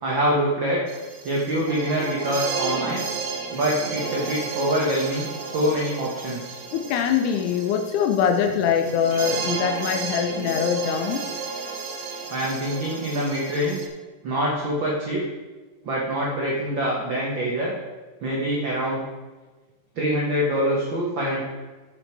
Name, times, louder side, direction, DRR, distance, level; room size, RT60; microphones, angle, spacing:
voice 1, 0.0-0.8 1.2-3.1 3.5-6.6 12.3-13.8 14.2-15.2 15.8-17.7 18.2-19.0 19.9-21.4, equal, 50° right, -4 dB, 1.6 m, -25 dB
sound 1, 0.9-13.9, right 5 dB, 85° right, 2.7 m, -32 dB
voice 2, 6.7-11.2, left 8 dB, 75° left, 4 dB, 2.1 m, -23 dB
13.5 x 5.6 x 4.6 m, 1.3 s
omnidirectional pair, 3.8 m